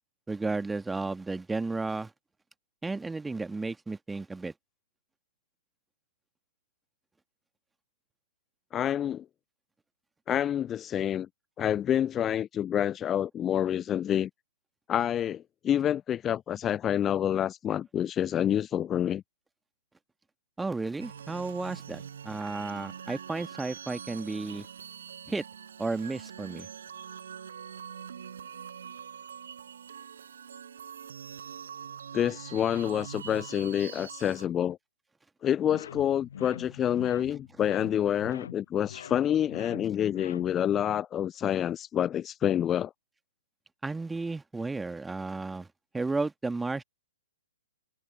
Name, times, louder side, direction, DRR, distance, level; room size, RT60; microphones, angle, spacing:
voice 1, 0.3-2.1 2.8-4.5 20.6-24.7 25.3-25.4 25.8-26.7 43.8-45.7 45.9-46.8, right 3 dB, 5° right, 1.9 m, -33 dB
voice 2, 8.7-9.2 10.3-11.3 11.6-14.3 14.9-19.2 32.1-34.8 35.4-42.9, left 10 dB, 20° left, 0.3 m, -28 dB
sound 1, 21.0-34.5, right 7 dB, 60° right, 4.4 m, -44 dB
sound 2, 35.7-40.8, left 8 dB, 55° left, 0.8 m, -44 dB
figure-of-eight pair, 120°, 0 cm